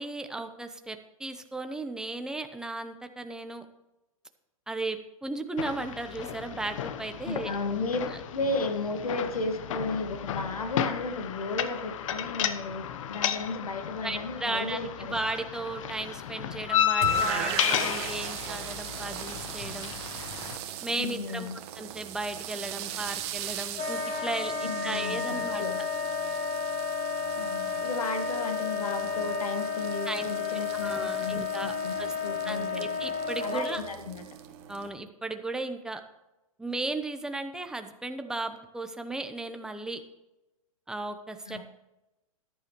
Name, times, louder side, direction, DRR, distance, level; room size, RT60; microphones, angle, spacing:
voice 1, 0.0-3.6 4.7-7.5 14.0-19.9 20.8-21.5 21.8-25.6 30.0-30.3 30.8-32.1 32.4-33.8 34.7-36.0 36.6-40.0 40.9-41.6, right 2 dB, 5° right, 7 dB, 0.9 m, -35 dB
sound 1, 5.6-20.6, left 9 dB, 60° left, 0.9 m, -33 dB
voice 2, 7.2-8.0 8.3-15.2 21.0-21.6 24.6-25.8 27.4-31.9 32.2-33.0 33.4-34.3 41.5-41.6, left 3 dB, 85° left, 6 dB, 1.8 m, -34 dB
sound 2, 17.0-34.9, right 10 dB, 50° right, 1.3 m, -39 dB
Wind instrument woodwind instrument, 23.8-33.9, left 5 dB, 35° left, 3.3 m, -32 dB
14.0 x 10.5 x 3.1 m, 0.96 s
hypercardioid pair, 120°, 18 cm